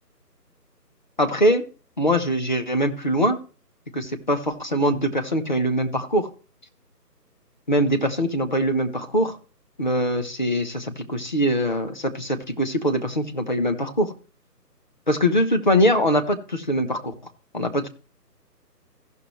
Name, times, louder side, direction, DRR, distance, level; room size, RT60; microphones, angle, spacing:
voice 1, 1.2-1.6 2.0-3.4 3.9-6.3 7.7-9.4 9.8-14.1 15.1-17.1 17.5-17.9, equal, 30° left, 4 dB, 0.9 m, -22 dB
15.5 x 6.3 x 3.1 m, 0.36 s
figure-of-eight pair, 155°, 49 cm